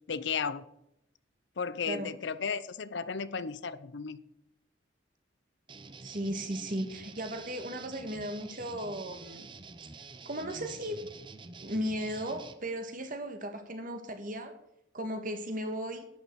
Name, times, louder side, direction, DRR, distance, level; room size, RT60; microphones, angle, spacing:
voice 1, 0.1-0.6 1.6-4.2, left 5 dB, 65° left, 15 dB, 0.6 m, -34 dB
sound 1, 5.7-12.5, right 4 dB, 25° right, 0.7 m, -48 dB
voice 2, 6.0-9.5 10.2-11.0 11.6-14.5 14.9-16.1, equal, 45° right, 7 dB, 1.6 m, -36 dB
11.5 x 9.2 x 4.7 m, 0.80 s
head